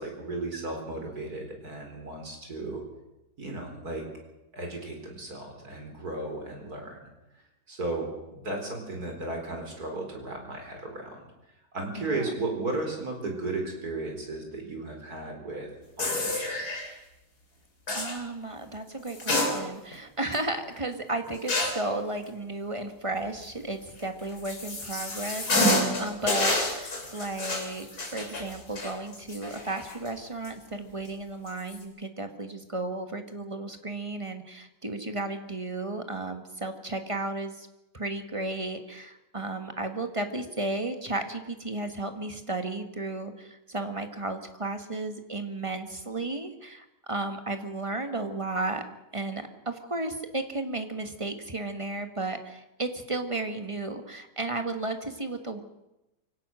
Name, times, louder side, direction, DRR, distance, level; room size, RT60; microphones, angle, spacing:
voice 1, 0.0-2.8 3.4-4.1 4.5-7.1 7.7-11.3 11.7-15.7 16.0-16.6, right 2 dB, 60° right, 2 dB, 4.8 m, -35 dB
sound 1, 16.0-16.9 17.9-18.2 19.1-20.0 20.3-20.4 21.5-21.9 24.0-30.1 30.4-30.5 31.5-31.8, left 1 dB, 60° left, 3.9 m, -29 dB
voice 2, 17.9-37.7 37.9-48.8 49.1-55.6, right 2 dB, 20° right, 7 dB, 1.5 m, -34 dB
24.0 x 17.0 x 6.4 m, 0.94 s
omnidirectional pair, 1.8 m